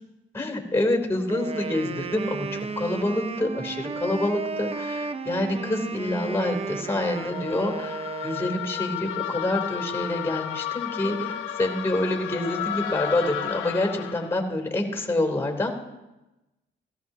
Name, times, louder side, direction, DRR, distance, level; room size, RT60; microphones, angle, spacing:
voice 1, 0.3-15.7, left 1 dB, 10° left, 3 dB, 3.1 m, -27 dB
Wind instrument woodwind instrument, 1.3-8.9, right 4 dB, 30° right, 0.6 m, -34 dB
sound 1, 7.1-14.4, left 10 dB, 90° left, 1.0 m, -33 dB
17.0 x 15.5 x 2.8 m, 1.0 s
cardioid pair, 90°, 20 cm